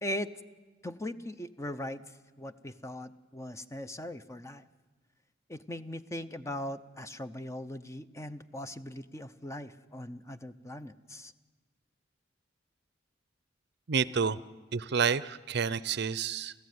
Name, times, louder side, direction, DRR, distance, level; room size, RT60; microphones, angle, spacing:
voice 1, 0.0-0.3 0.8-2.0 2.4-4.6 5.5-11.3, left 1 dB, 15° left, 11 dB, 0.7 m, -39 dB
voice 2, 13.9-14.4 14.7-16.5, right 6 dB, 60° right, 18 dB, 0.6 m, -29 dB
29.5 x 14.5 x 9.5 m, 1.3 s
head